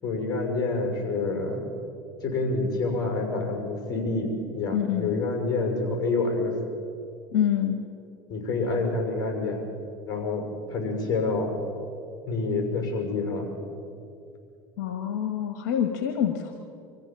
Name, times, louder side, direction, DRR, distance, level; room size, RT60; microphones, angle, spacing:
voice 1, 0.0-1.6 2.2-6.6 8.3-9.6 10.1-11.5 12.3-13.5, left 3 dB, 40° left, 3 dB, 6.1 m, -27 dB
voice 2, 4.7-5.1 7.3-7.8 14.8-16.5, left 9 dB, 75° left, 6 dB, 1.5 m, -26 dB
24.5 x 15.0 x 7.5 m, 2.6 s
supercardioid pair, 95°, 10 cm